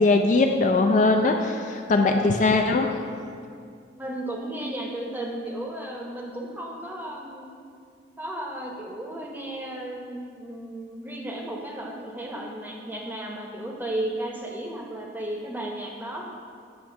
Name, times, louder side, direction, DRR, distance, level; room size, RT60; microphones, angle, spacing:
voice 1, 0.0-2.9, left 3 dB, 40° left, 4 dB, 0.3 m, -20 dB
voice 2, 1.6-2.0 3.9-7.5 8.2-16.3, right 1 dB, 10° right, -1 dB, 0.8 m, -34 dB
8.6 x 3.1 x 5.9 m, 2.2 s
head